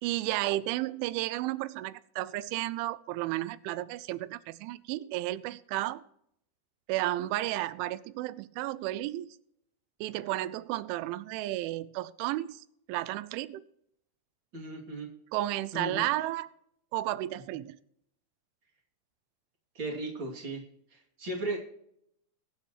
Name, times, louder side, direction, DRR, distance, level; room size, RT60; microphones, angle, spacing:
voice 1, 0.0-6.0 6.9-9.3 10.0-13.6 15.3-16.5 16.9-17.8, right 16 dB, 85° right, 17 dB, 3.0 m, -33 dB
voice 2, 14.5-15.1 15.7-16.0 19.7-20.6 20.9-21.6, right 2 dB, 35° right, -1 dB, 2.4 m, -36 dB
22.0 x 7.8 x 3.0 m, 0.74 s
omnidirectional pair, 5.4 m